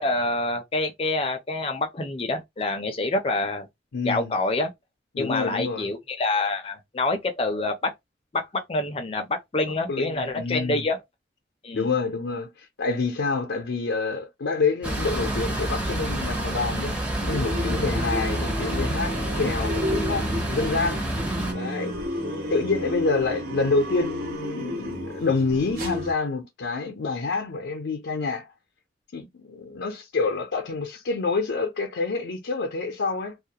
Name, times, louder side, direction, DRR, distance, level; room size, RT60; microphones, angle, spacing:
voice 1, 0.0-3.7 4.0-4.7 5.2-7.9 8.3-11.0 11.6-11.9, left 2 dB, 30° left, 0.4 m, -27 dB
voice 2, 3.9-4.3 5.1-5.9 9.9-10.9 11.7-21.0 21.5-21.9 22.5-28.5 29.1-33.3, left 4 dB, 85° left, 0.5 m, -27 dB
sound 1, 14.8-21.5, right 1 dB, 5° right, 0.6 m, -28 dB
sound 2, 17.2-26.1, equal, 55° right, 0.8 m, -32 dB
2.3 x 2.1 x 2.7 m
head